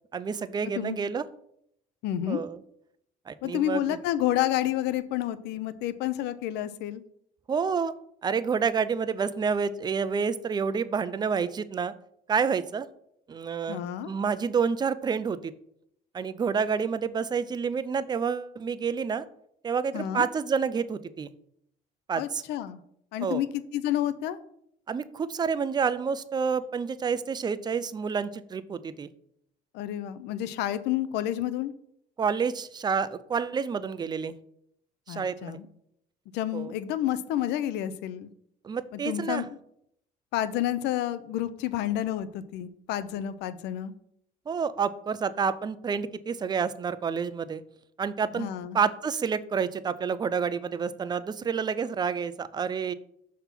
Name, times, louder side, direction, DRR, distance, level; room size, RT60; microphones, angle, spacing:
voice 1, 0.1-1.2 2.3-2.6 3.3-3.8 7.5-7.9 8.2-11.9 12.3-12.9 13.3-15.5 16.1-19.3 19.6-21.3 22.1-22.4 23.2-23.4 24.9-29.1 32.2-34.3 35.1-35.6 36.5-36.7 38.6-39.4 44.5-47.6 48.0-52.9, right 6 dB, 25° right, 14 dB, 0.4 m, -29 dB
voice 2, 2.0-2.5 3.4-7.0 13.7-14.1 19.9-20.3 22.2-22.8 23.1-23.5 23.7-24.4 29.7-31.7 35.1-35.7 36.3-38.3 38.9-39.5 40.3-43.9 48.3-48.8, left 12 dB, 85° left, 14 dB, 0.5 m, -30 dB
5.8 x 3.6 x 5.8 m, 0.72 s
cardioid pair, 110°, 17 cm